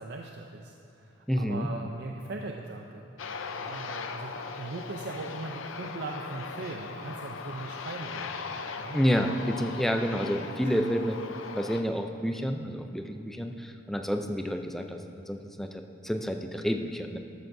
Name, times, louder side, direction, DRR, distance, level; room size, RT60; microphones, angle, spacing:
voice 1, 0.0-3.0 3.6-9.0 10.2-10.4 10.7-10.8, right 3 dB, 55° right, 2 dB, 0.5 m, -40 dB
voice 2, 1.3-1.7 8.9-11.2 11.6-15.0 15.3-17.2, equal, ahead, 4 dB, 0.5 m, -29 dB
Aircraft, 3.2-11.8, left 5 dB, 85° left, 0.6 m, -39 dB
13.5 x 12.5 x 2.7 m, 2.7 s
head